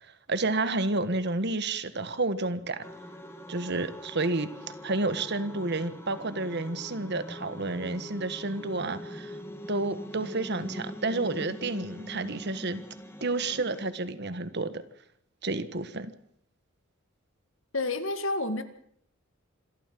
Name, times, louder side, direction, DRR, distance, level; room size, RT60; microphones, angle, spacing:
voice 1, 0.3-2.8 3.5-9.4 9.7-12.8 13.2-14.8 15.4-16.1, right 2 dB, 50° right, 13 dB, 1.5 m, -30 dB
sound 1, 2.8-13.8, equal, 10° left, 2.5 m, -42 dB
voice 2, 17.7-18.6, left 2 dB, 65° left, 10 dB, 2.1 m, -29 dB
26.5 x 13.5 x 7.7 m, 0.69 s
head